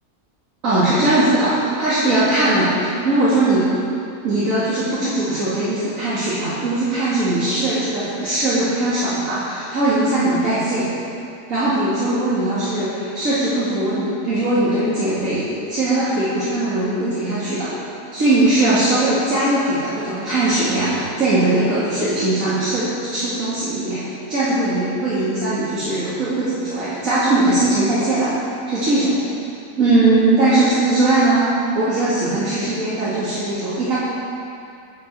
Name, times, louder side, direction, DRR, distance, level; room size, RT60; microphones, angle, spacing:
voice 1, 0.6-3.7 4.2-10.9 11.5-17.7 18.1-28.3 28.7-29.2 29.8-34.0, right 2 dB, 70° right, -12 dB, 2.7 m, -20 dB
10.5 x 7.7 x 7.5 m, 2.6 s
omnidirectional pair, 1.5 m